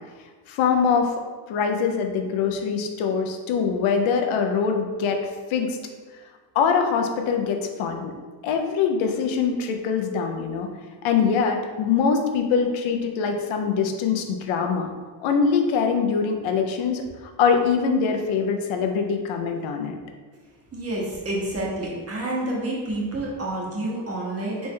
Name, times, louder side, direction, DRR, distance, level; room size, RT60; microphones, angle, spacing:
voice 1, 0.5-1.1 1.5-5.2 5.5-5.8 6.5-8.1 8.4-10.7 11.0-14.9 15.2-17.0 17.4-19.9, left 6 dB, 85° left, 4 dB, 0.7 m, -23 dB
voice 2, 20.7-24.7, right 1 dB, 30° right, -3 dB, 1.4 m, -29 dB
4.1 x 3.6 x 3.3 m, 1.5 s
cardioid pair, 90°, 46 cm